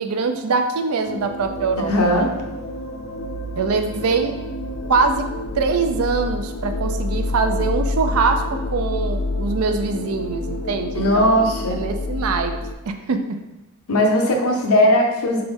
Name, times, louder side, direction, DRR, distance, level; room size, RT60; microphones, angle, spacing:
voice 1, 0.0-2.3 3.6-4.4 4.9-5.3 5.5-12.5 12.9-13.4, right 4 dB, 80° right, 7 dB, 0.5 m, -23 dB
sound 1, 1.0-12.7, left 2 dB, 55° left, 0.4 m, -28 dB
voice 2, 1.9-2.3 10.9-11.8 13.9-15.4, left 1 dB, 85° left, 1 dB, 0.8 m, -18 dB
3.9 x 3.3 x 3.6 m, 0.99 s
head